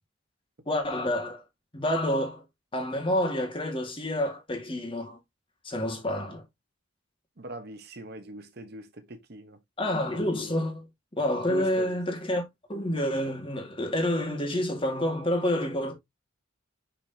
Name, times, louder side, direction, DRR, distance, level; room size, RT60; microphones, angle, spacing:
voice 1, 0.7-1.4 1.7-2.4 2.7-5.2 5.6-6.4 9.8-10.9 11.2-15.9, left 1 dB, 25° left, 1.8 m, -28 dB
voice 2, 7.4-9.6 11.4-12.0, right 1 dB, 50° right, 1.0 m, -41 dB
6.0 x 5.7 x 2.8 m
head